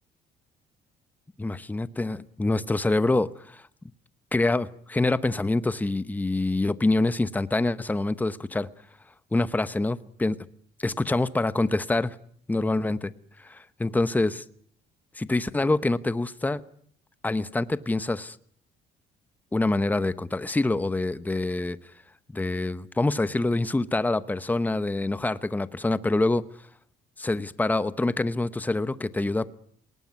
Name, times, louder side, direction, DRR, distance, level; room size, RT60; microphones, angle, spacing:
voice 1, 1.4-3.6 4.3-8.7 9.3-10.4 10.8-12.2 12.5-13.1 13.4-14.4 15.1-16.6 17.2-18.4 19.5-21.8 22.3-26.4 27.2-29.5, left 2 dB, 10° left, 15 dB, 0.9 m, -26 dB
19.5 x 19.0 x 9.4 m, 0.63 s
cardioid pair, 110°, 17 cm